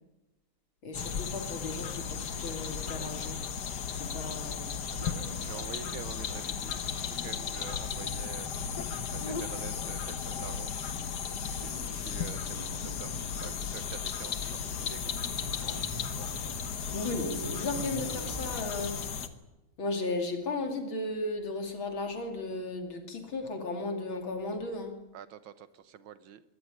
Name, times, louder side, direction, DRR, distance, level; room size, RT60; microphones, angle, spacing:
voice 1, 0.8-3.4 3.9-4.7 16.9-18.9 19.8-24.9, left 2 dB, 75° left, 4 dB, 3.4 m, -35 dB
sound 1, 0.9-19.3, left 7 dB, 55° left, 1.7 m, -35 dB
Zipper (clothing), 1.9-3.3 4.9-6.0 7.4-10.7 11.4-13.7 14.6-18.6, right 1 dB, 15° right, 2.5 m, -46 dB
voice 2, 5.0-8.5 9.1-10.7 11.5-15.1 16.7-16.9 25.1-26.4, right 9 dB, 80° right, 13 dB, 1.9 m, -47 dB
22.5 x 14.5 x 9.7 m, 1.0 s
omnidirectional pair, 2.2 m